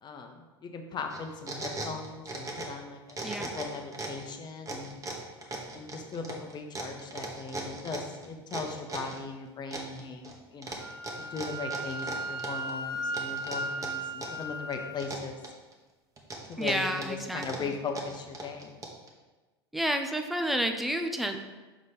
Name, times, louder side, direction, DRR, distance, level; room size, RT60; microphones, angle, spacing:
voice 1, 0.0-4.9 5.7-10.8 11.2-15.4 16.5-18.8, left 5 dB, 30° left, 5 dB, 1.0 m, -39 dB
sound 1, 1.1-2.8 3.1-4.2 4.6-9.2 9.7-10.3 10.6-12.7 13.1-14.4 14.7-15.7 16.2-19.1, right 2 dB, 25° right, 1.3 m, -38 dB
Wind instrument woodwind instrument, 10.8-15.0, right 1 dB, 90° right, 0.6 m, -36 dB
voice 2, 16.6-17.8 19.7-21.4, right 1 dB, ahead, 5 dB, 0.7 m, -30 dB
6.2 x 4.1 x 5.2 m, 1.2 s
hypercardioid pair, 80°, 14 cm